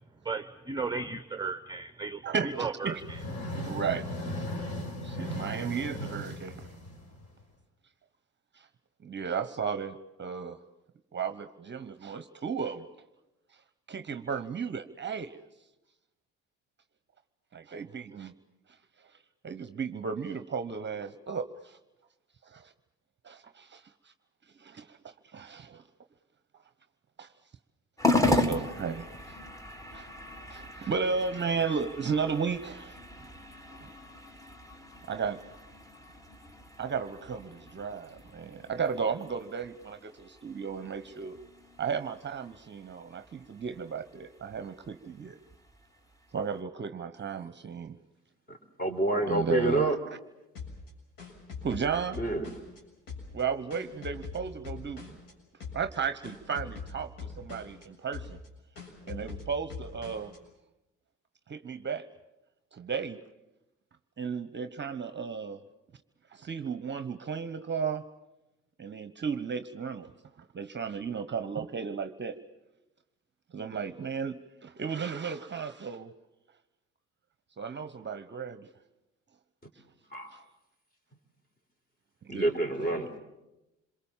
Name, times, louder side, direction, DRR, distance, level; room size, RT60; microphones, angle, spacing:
voice 1, 0.2-3.2, right 4 dB, 10° right, 9 dB, 1.0 m, -35 dB
voice 2, 2.2-3.0 3.3-4.1 4.8-6.7 8.5-8.7 9.0-10.6 11.1-12.8 13.5-13.6 13.9-15.4 17.5-18.3 18.7-19.2 19.4-21.8 22.4-22.7 23.2-24.1 24.5-25.8 27.2-27.3 28.2-29.4 29.9-30.1 30.5-33.3 33.8-33.9 35.1-35.4 36.8-41.4 41.8-45.4 46.3-48.0 49.3-50.0 51.6-52.2 53.3-55.2 55.7-58.4 59.1-60.3 61.5-62.1 62.7-63.2 64.2-65.6 66.3-68.0 68.8-70.1 70.4-72.3 73.5-76.1 77.6-78.7 80.3-80.4 82.2-82.5 82.8-83.0, right 6 dB, 30° right, 10 dB, 1.0 m, -34 dB
sound 1, 2.9-7.4, equal, 40° left, 5.0 m, -37 dB
sound 2, 28.0-46.6, left 2 dB, 10° left, 1.8 m, -36 dB
voice 3, 48.5-50.0 52.2-52.4 80.1-80.4 82.3-83.2, right 2 dB, 25° left, 6 dB, 4.5 m, -28 dB
sound 3, 50.6-52.8 53.1-55.3 55.6-56.0 56.2-57.9 58.1-58.5 58.8-60.4, left 5 dB, 65° left, 7.1 m, -42 dB
27.0 x 22.5 x 7.4 m, 0.96 s
hypercardioid pair, 70°, 36 cm